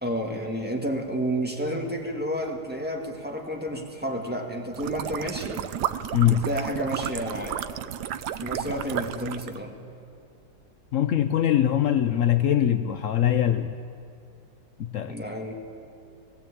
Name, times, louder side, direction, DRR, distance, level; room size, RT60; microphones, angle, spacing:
voice 1, 0.0-5.7 6.2-7.6 8.3-9.8 15.1-15.5, equal, 5° right, 0 dB, 1.7 m, -31 dB
sound 1, 4.7-9.6, right 10 dB, 70° right, 1.1 m, -32 dB
voice 2, 6.1-6.4 10.9-13.8 14.8-15.1, left 10 dB, 85° left, 9 dB, 0.7 m, -22 dB
18.5 x 17.0 x 8.6 m, 2.4 s
omnidirectional pair, 2.1 m